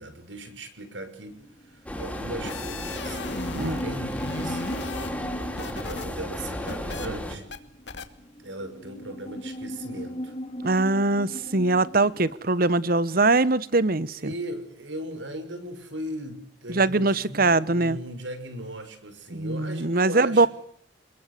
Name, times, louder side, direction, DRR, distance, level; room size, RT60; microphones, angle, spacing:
voice 1, 0.0-1.4 1.6-4.9 5.2-7.5 8.4-10.3 12.2-12.3 14.2-20.5, right 1 dB, 80° right, 6.0 m, -38 dB
sound 1, 1.3-12.3, equal, 35° left, 1.9 m, -39 dB
sound 2, 1.9-7.4, left 1 dB, 5° left, 4.9 m, -34 dB
sound 3, 2.2-3.9 4.1-6.1 6.4-7.1 7.5-7.6 7.9-8.1, left 3 dB, 65° left, 2.4 m, -37 dB
voice 2, 10.6-14.3 16.7-18.0 19.3-20.5, right 2 dB, 50° right, 1.2 m, -22 dB
28.5 x 21.5 x 8.4 m
head